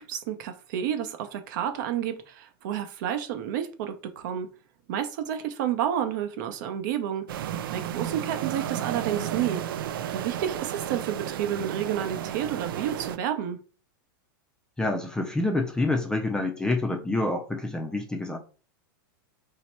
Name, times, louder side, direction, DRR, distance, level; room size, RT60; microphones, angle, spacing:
voice 1, 0.0-4.5 4.9-7.3 7.7-9.7 10.1-13.6, right 10 dB, 60° right, 0.7 m, -30 dB
sound 1, 7.3-13.2, right 10 dB, 85° right, 0.4 m, -33 dB
voice 2, 14.8-18.4, left 2 dB, 5° left, 0.5 m, -27 dB
3.1 x 2.8 x 4.4 m
supercardioid pair, 145°, 11 cm